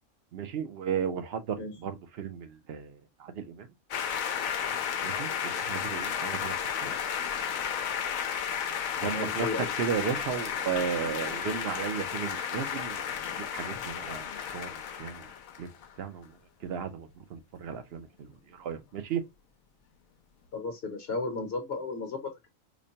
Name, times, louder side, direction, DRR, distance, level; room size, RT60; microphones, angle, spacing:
voice 1, 0.3-3.7 5.0-6.5 6.8-6.9 8.9-13.2 13.5-15.3 15.6-15.7 16.0-19.2, right 7 dB, 55° right, 0.8 m, -35 dB
sound 1, 3.9-15.9, left 8 dB, 80° left, 1.0 m, -33 dB
voice 2, 9.0-9.7 10.1-10.2 20.5-22.5, left 3 dB, 55° left, 1.0 m, -34 dB
5.1 x 2.2 x 2.7 m
omnidirectional pair, 1.4 m